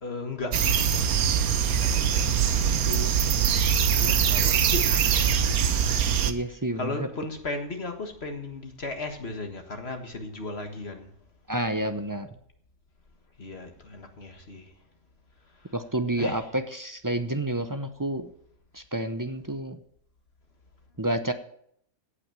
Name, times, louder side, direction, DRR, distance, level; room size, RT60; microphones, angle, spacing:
voice 1, 0.0-1.0 1.8-3.1 4.0-5.3 5.7-6.2 6.8-11.1 13.4-14.7 16.2-16.4, left 2 dB, 45° left, 5 dB, 1.8 m, -36 dB
sound 1, 0.5-6.3, right 8 dB, 85° right, 1.3 m, -23 dB
voice 2, 6.2-7.1 11.5-12.3 15.7-18.3 18.7-19.8 21.0-21.3, right 1 dB, 20° right, 8 dB, 0.5 m, -29 dB
16.5 x 6.0 x 7.6 m, 0.67 s
omnidirectional pair, 1.5 m